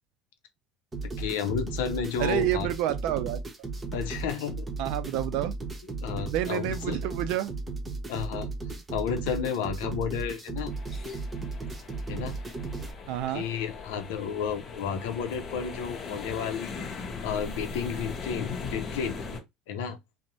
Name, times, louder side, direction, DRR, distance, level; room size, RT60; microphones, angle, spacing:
sound 1, 0.9-12.9, right 3 dB, 25° right, 0.8 m, -35 dB
voice 1, 1.2-2.7 3.9-4.6 6.0-7.0 8.1-8.5 8.9-10.7 12.1-12.4 13.3-19.2 19.7-20.0, left 7 dB, 80° left, 0.6 m, -32 dB
voice 2, 2.2-3.4 4.8-5.5 6.3-7.5 13.1-13.5, right 13 dB, 70° right, 0.3 m, -29 dB
sound 2, 10.7-19.4, left 4 dB, 45° left, 0.8 m, -39 dB
2.6 x 2.1 x 2.9 m
supercardioid pair, 85°, 0 cm